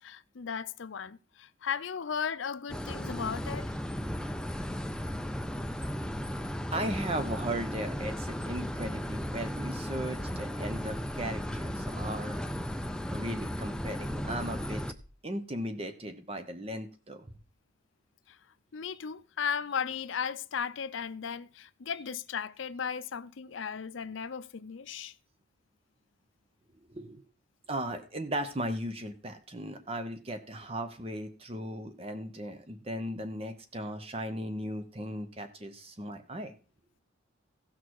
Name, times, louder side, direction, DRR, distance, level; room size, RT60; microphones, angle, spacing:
voice 1, 0.0-3.7 18.3-18.4 18.7-25.1, left 7 dB, 70° left, 0.5 m, -36 dB
sound 1, 2.7-14.9, equal, 5° left, 0.4 m, -35 dB
voice 2, 6.2-12.5 13.1-14.8 15.2-17.3 18.9-19.0 21.9-22.0 26.9-27.2 27.7-36.5, right 1 dB, 30° right, 0.8 m, -37 dB
sound 2, 9.5-15.1, equal, 25° left, 1.2 m, -52 dB
16.0 x 6.3 x 4.7 m
head